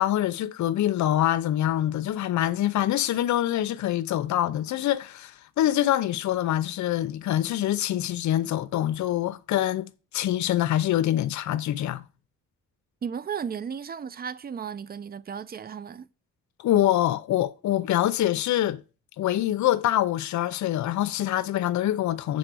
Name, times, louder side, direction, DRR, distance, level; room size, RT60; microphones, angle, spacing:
voice 1, 0.0-12.0 16.6-18.8 19.2-22.4, left 13 dB, 70° left, 0.7 m, -25 dB
voice 2, 13.0-16.1, right 7 dB, 30° right, 0.5 m, -34 dB
7.9 x 4.3 x 6.1 m
cardioid pair, 90°, 30 cm